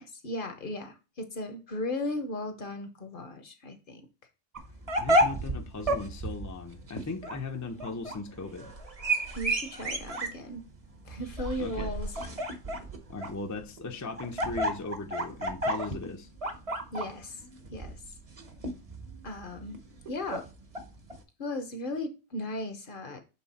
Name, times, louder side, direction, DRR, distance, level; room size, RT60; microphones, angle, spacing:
voice 1, 0.0-4.0 9.3-10.6 11.0-12.1 16.9-17.4 17.7-18.0 19.2-19.8 20.1-20.5 21.4-23.2, left 1 dB, 50° left, 0.9 m, -36 dB
sound 1, 4.6-21.2, right 1 dB, 35° right, 0.8 m, -32 dB
voice 2, 5.0-8.7 11.6-11.9 13.1-16.3, left 3 dB, 20° left, 0.5 m, -38 dB
7.5 x 3.3 x 4.1 m
omnidirectional pair, 1.2 m